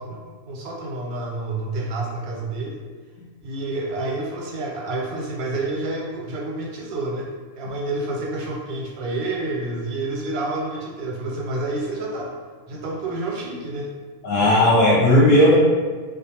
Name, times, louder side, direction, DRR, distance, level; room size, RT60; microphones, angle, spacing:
voice 1, 0.0-2.8 3.4-7.3 7.6-12.3 12.7-13.9, right 2 dB, 90° right, -2 dB, 1.1 m, -29 dB
voice 2, 14.2-15.5, left 1 dB, 65° left, -5 dB, 0.8 m, -15 dB
2.4 x 2.3 x 2.8 m, 1.5 s
omnidirectional pair, 1.5 m